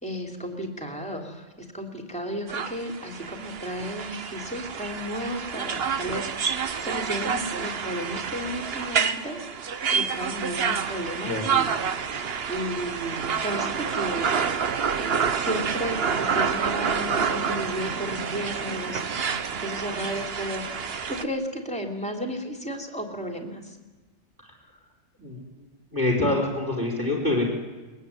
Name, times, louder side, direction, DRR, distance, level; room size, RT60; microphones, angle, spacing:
voice 1, 0.0-9.4 9.9-11.7 12.5-14.3 15.0-19.2 19.6-23.8, equal, 5° left, 3 dB, 3.2 m, -33 dB
sound 1, 2.5-21.2, right 6 dB, 55° right, 1.2 m, -28 dB
voice 2, 25.2-25.6 25.9-27.5, left 2 dB, 15° right, 0 dB, 5.1 m, -26 dB
22.0 x 21.0 x 9.4 m, 1.2 s
omnidirectional pair, 1.3 m